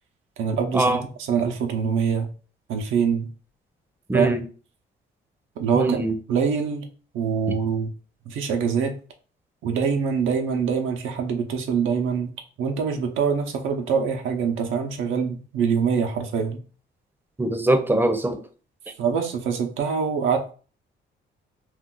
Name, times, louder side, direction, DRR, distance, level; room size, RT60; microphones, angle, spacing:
voice 1, 0.4-2.3 2.7-3.3 4.1-4.3 5.6-6.0 6.3-6.8 7.1-7.9 8.3-8.9 9.6-12.3 12.6-16.6 19.0-20.5, right 6 dB, 85° right, 0.6 m, -24 dB
voice 2, 4.1-4.4 5.7-6.1 17.4-18.4, right 1 dB, 10° right, 0.5 m, -22 dB
2.5 x 2.2 x 3.7 m
cardioid pair, 90°, 20 cm